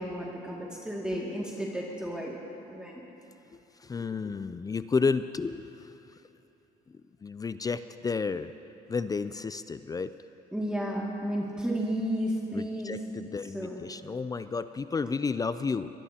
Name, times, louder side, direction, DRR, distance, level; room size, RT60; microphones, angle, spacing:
voice 1, 0.0-2.4 2.7-3.0 10.5-12.9 13.5-13.8, equal, 5° right, -4 dB, 2.3 m, -32 dB
voice 2, 3.5-5.9 6.9-8.5 8.9-10.1 12.5-15.9, left 4 dB, 20° left, 12 dB, 0.4 m, -32 dB
24.0 x 20.5 x 2.9 m, 2.9 s
cardioid pair, 110°, 17 cm